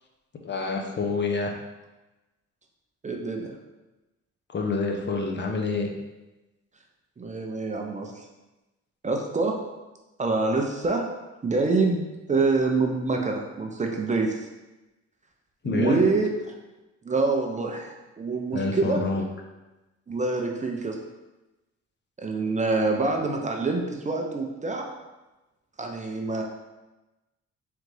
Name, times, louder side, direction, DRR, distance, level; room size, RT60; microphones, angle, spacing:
voice 1, 0.4-1.5 4.5-5.9 15.6-16.1 18.5-19.2, left 3 dB, 40° left, 2 dB, 0.6 m, -27 dB
voice 2, 3.0-3.5 7.2-8.1 9.0-9.6 10.2-11.1 11.4-14.5 15.6-16.3 17.0-19.0 20.1-21.0 22.2-24.9 25.8-26.4, right 3 dB, 25° right, 2 dB, 0.5 m, -26 dB
3.8 x 3.4 x 3.2 m, 1.1 s
cardioid pair, 90°, 30 cm